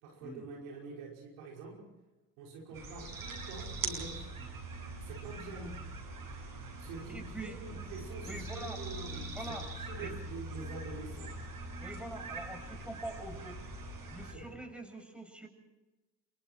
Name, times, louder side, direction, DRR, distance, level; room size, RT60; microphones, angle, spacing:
voice 1, 0.0-1.9 2.4-4.3 5.0-5.8 6.8-11.4 14.3-14.7, right 3 dB, 75° right, -1 dB, 5.5 m, -46 dB
sound 1, 2.7-14.3, right 2 dB, 50° right, 7.9 m, -42 dB
voice 2, 7.0-7.6 8.2-8.8 9.3-9.6 10.0-10.1 11.8-13.6 14.1-15.5, right 1 dB, ahead, 4 dB, 7.3 m, -44 dB
27.0 x 24.5 x 4.5 m, 1.1 s
hypercardioid pair, 50°, 44 cm